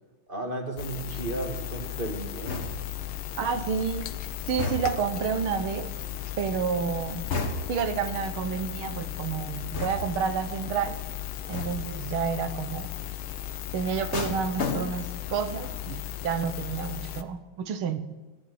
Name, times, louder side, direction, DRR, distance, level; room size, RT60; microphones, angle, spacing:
voice 1, 0.3-2.7, right 2 dB, 25° right, 4 dB, 1.9 m, -34 dB
sound 1, 0.8-17.2, left 12 dB, 80° left, 1.8 m, -36 dB
sound 2, 2.5-3.0 4.6-5.2 7.3-7.9 9.7-10.3 11.5-12.0 14.1-15.3 15.6-16.0, left 3 dB, 35° left, 1.7 m, -33 dB
voice 2, 3.4-4.1 4.5-5.9 6.4-7.2 7.7-11.0 11.5-12.9 13.7-18.0, right 6 dB, 75° right, 10 dB, 2.0 m, -30 dB
15.0 x 12.0 x 7.9 m, 1.3 s
omnidirectional pair, 2.4 m